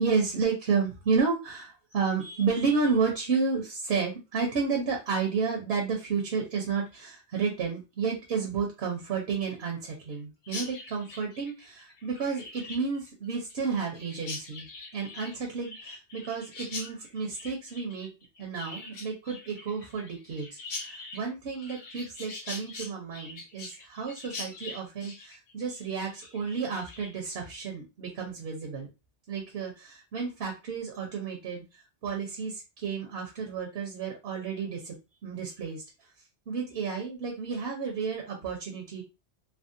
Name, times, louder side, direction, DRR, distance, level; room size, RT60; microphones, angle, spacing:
voice 1, 0.0-18.1 18.4-28.9 29.3-35.0 35.2-35.8 36.5-39.0, right 5 dB, 65° right, 1 dB, 0.9 m, -31 dB
Chirp tweet, 10.4-27.3, left 3 dB, 60° left, 1.0 m, -43 dB
3.4 x 2.0 x 2.5 m, 0.27 s
omnidirectional pair, 1.2 m